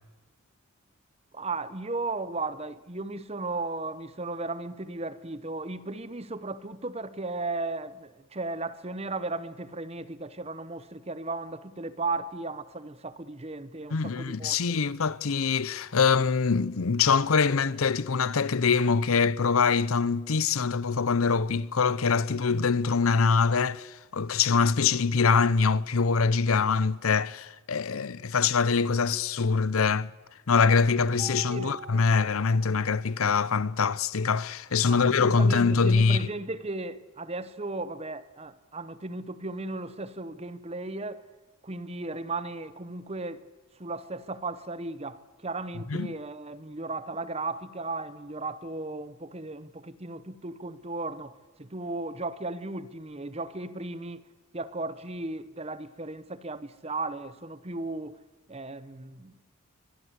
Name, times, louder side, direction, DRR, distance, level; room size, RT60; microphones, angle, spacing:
voice 1, 1.3-14.8 31.5-31.8 34.9-41.2 41.6-43.5 43.8-54.3 54.5-58.2 58.5-59.3, right 3 dB, 30° right, 1.0 m, -35 dB
voice 2, 13.9-30.1 30.5-36.3 45.9-46.1, left 5 dB, 80° left, 0.7 m, -24 dB
Mallet percussion, 31.2-33.4, right 5 dB, 10° right, 6.1 m, -46 dB
23.0 x 22.5 x 8.2 m
head